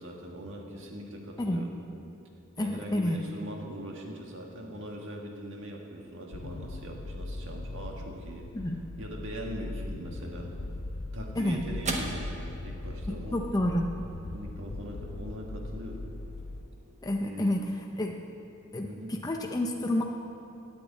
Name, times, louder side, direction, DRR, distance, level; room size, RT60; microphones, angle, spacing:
voice 1, 0.0-1.8 2.6-8.5 9.0-10.5 11.1-13.4 14.3-16.0 17.2-17.6 18.8-19.2, equal, 65° right, 0 dB, 1.7 m, -41 dB
voice 2, 2.6-3.2 8.5-8.8 11.4-11.6 13.1-13.9 17.0-17.6 18.0-18.1 18.7-20.0, left 1 dB, 20° left, 1 dB, 0.6 m, -29 dB
sound 1, 6.3-16.6, left 2 dB, 85° left, 0.7 m, -39 dB
sound 2, 10.6-19.1, right 2 dB, 35° right, 1.1 m, -44 dB
9.4 x 8.3 x 8.6 m, 2.8 s
head